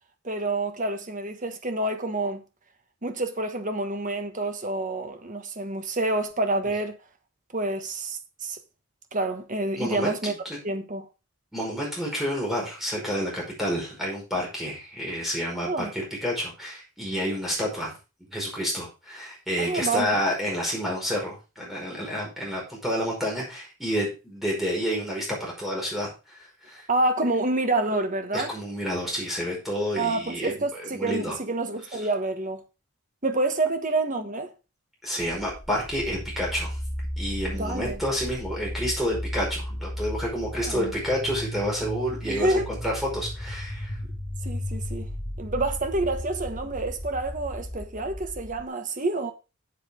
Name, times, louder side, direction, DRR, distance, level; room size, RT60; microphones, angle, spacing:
voice 1, 0.2-2.4 3.0-7.0 7.5-8.6 9.1-10.3 10.6-11.1 15.6-15.9 19.6-20.2 26.9-28.5 30.0-32.6 33.2-34.5 37.5-38.0 40.6-40.9 42.2-42.7 44.4-45.1 45.4-49.3, right 2 dB, 35° right, 1.3 m, -28 dB
voice 2, 9.8-10.6 11.5-18.0 18.3-26.8 28.3-30.5 30.8-31.4 35.0-36.8 37.2-44.0, equal, ahead, 5.3 m, -29 dB
sound 1, 35.2-48.7, equal, 25° left, 1.5 m, -35 dB
7.9 x 7.7 x 5.1 m
head